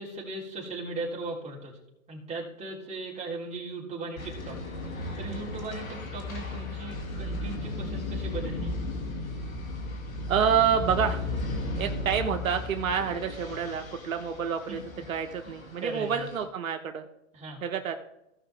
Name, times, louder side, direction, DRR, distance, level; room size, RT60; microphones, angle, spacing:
voice 1, 0.0-1.7 2.1-4.6 5.2-8.7 14.7-15.0 15.4-15.6 15.8-16.3 17.3-17.6, right 3 dB, 15° right, -4 dB, 3.5 m, -38 dB
sound 1, 4.2-16.4, left 2 dB, 80° left, 2.5 m, -35 dB
voice 2, 10.3-11.2 11.8-14.8 15.1-17.1 17.6-17.9, right 7 dB, 80° right, 6 dB, 1.2 m, -28 dB
16.5 x 5.8 x 3.5 m, 0.86 s
hypercardioid pair, 130°, 40 cm